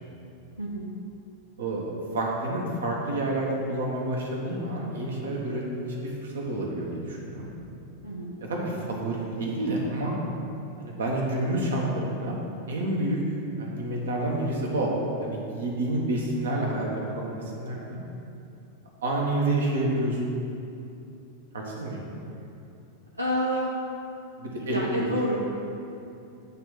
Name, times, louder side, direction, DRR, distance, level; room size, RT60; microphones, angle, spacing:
voice 1, 0.6-0.9 8.0-8.3 23.2-23.7 24.6-25.3, equal, 90° right, -5 dB, 0.7 m, -29 dB
voice 2, 1.6-5.6 6.0-7.5 8.5-10.1 10.8-12.4 12.7-13.2 13.6-14.9 15.2-16.9 17.1-18.0 19.0-20.2 21.5-22.0 24.4-25.1, right 1 dB, 65° right, -2 dB, 1.3 m, -29 dB
8.5 x 3.6 x 6.3 m, 2.7 s
figure-of-eight pair, 90°, 0 cm